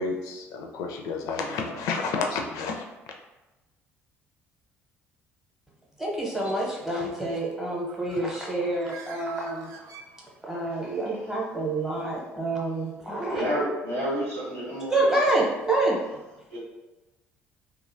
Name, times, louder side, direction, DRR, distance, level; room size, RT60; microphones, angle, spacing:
voice 1, 0.0-2.8, left 4 dB, 60° left, 2 dB, 0.4 m, -30 dB
voice 2, 6.0-9.7 10.4-13.4 14.9-16.0, right 2 dB, 5° right, -3 dB, 0.8 m, -27 dB
Bird, 7.7-10.7, right 5 dB, 55° right, 0.4 m, -46 dB
voice 3, 13.3-15.1 16.5-16.6, equal, 80° right, -8 dB, 1.0 m, -29 dB
2.8 x 2.4 x 2.6 m, 1.1 s
figure-of-eight pair, 50°, 7 cm